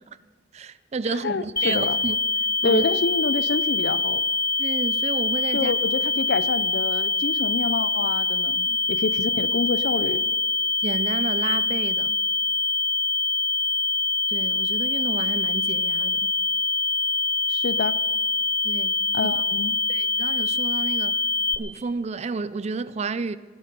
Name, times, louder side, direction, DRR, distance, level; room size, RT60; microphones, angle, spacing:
voice 1, 0.5-2.2 2.6-2.8 4.6-5.7 8.7-8.8 10.8-12.2 14.3-16.3 18.6-18.9 19.2-19.3 19.9-21.2 21.6-23.4, right 4 dB, 35° right, 0.4 m, -31 dB
voice 2, 1.1-2.0 2.6-4.2 5.5-10.2 17.5-18.0 19.1-19.8, left 4 dB, 65° left, 0.5 m, -27 dB
sound 1, 1.6-21.6, left 3 dB, 15° left, 0.6 m, -24 dB
19.0 x 11.5 x 5.4 m
head